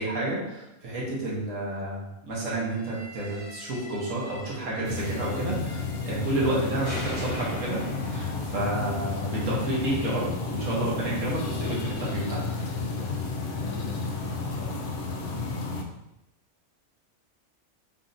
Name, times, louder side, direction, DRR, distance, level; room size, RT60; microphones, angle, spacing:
voice 1, 0.0-7.8 8.1-12.4, right 1 dB, 65° right, -5 dB, 1.4 m, -30 dB
sound 1, 2.7-6.5 6.8-9.9, equal, 20° left, 0.9 m, -42 dB
sound 2, 4.8-15.8, left 3 dB, 65° left, 0.8 m, -32 dB
voice 2, 12.9-13.3 13.6-14.9 15.3-15.8, right 1 dB, 45° left, -8 dB, 1.7 m, -46 dB
5.3 x 2.7 x 2.6 m, 0.89 s
omnidirectional pair, 1.5 m